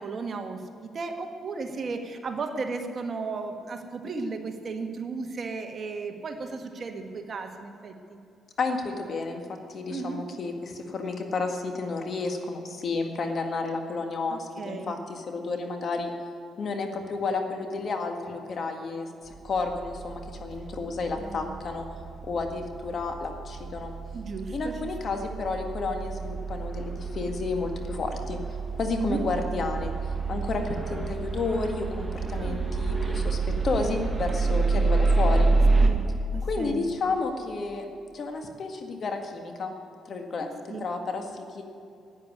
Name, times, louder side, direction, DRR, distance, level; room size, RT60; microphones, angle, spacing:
voice 1, 0.0-8.2 9.9-10.2 14.3-15.0 21.2-21.5 24.1-24.7 25.1-25.2 29.0-29.2 32.3-32.6 35.8-36.8 40.4-40.8, right 4 dB, 45° right, 5 dB, 1.5 m, -35 dB
voice 2, 8.6-9.4 9.7-16.1 16.6-21.9 22.2-23.9 24.5-28.4 28.7-29.9 30.3-33.4 33.6-35.5 36.4-37.9 38.1-39.7 40.0-40.5 40.8-41.6, left 3 dB, 50° left, 4 dB, 1.9 m, -31 dB
sound 1, 19.4-35.9, right 3 dB, 20° right, 1.5 m, -28 dB
11.0 x 9.7 x 9.8 m, 2.6 s
cardioid pair, 90°, 0 cm